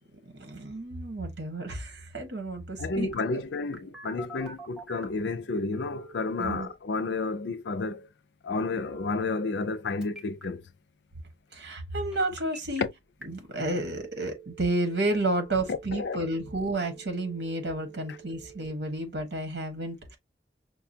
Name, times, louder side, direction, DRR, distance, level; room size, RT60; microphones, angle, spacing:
voice 1, 0.2-3.1 6.4-6.7 11.5-12.8 13.3-20.2, right 2 dB, 85° right, 1.3 m, -31 dB
voice 2, 2.8-8.1 8.4-10.7 12.8-12.9 15.7-16.2, left 3 dB, 80° left, 0.5 m, -31 dB
Telephone, 3.1-5.2 5.7-6.7 8.7-9.7 10.0-10.4 12.1-12.8 13.2-13.3 13.7-18.7, right 3 dB, 5° right, 1.0 m, -48 dB
5.7 x 2.3 x 2.7 m
head